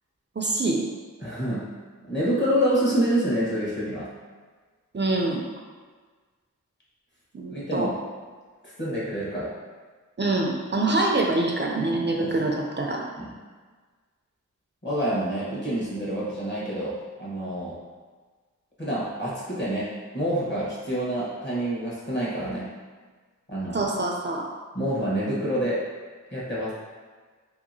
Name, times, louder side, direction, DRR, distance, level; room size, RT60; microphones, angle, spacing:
voice 1, 0.4-0.8 4.9-5.4 7.3-7.9 10.2-13.0 23.7-24.5, right 2 dB, 35° right, 0 dB, 0.4 m, -25 dB
voice 2, 1.2-1.6 2.1-4.1 7.5-7.9 8.8-9.5 12.2-12.6 13.2-13.3 14.8-17.8 18.8-22.7 23.5-23.9 24.7-25.8 26.3-26.7, right 1 dB, 35° left, -7 dB, 1.1 m, -27 dB
2.8 x 2.7 x 2.6 m, 1.4 s
wide cardioid pair, 50°, 32 cm